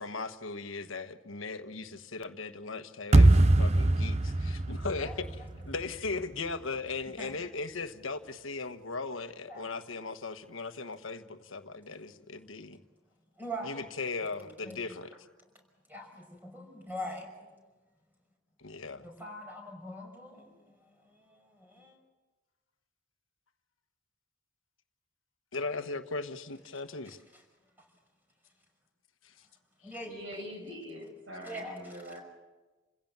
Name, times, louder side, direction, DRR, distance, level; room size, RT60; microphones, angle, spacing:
voice 1, 0.0-12.8 13.6-15.1 18.6-19.1 25.5-27.2, left 3 dB, 85° left, 9 dB, 1.3 m, -38 dB
sound 1, 3.1-6.2, right 2 dB, 30° right, 0.6 m, -23 dB
voice 2, 13.4-13.8 14.4-14.8 15.9-17.3 19.0-22.0 27.3-27.4 29.8-30.1 31.4-31.9, equal, 10° right, 2 dB, 5.6 m, -42 dB
voice 3, 30.0-32.2, equal, 70° right, 2 dB, 7.5 m, -43 dB
29.0 x 16.5 x 7.4 m, 1.2 s
head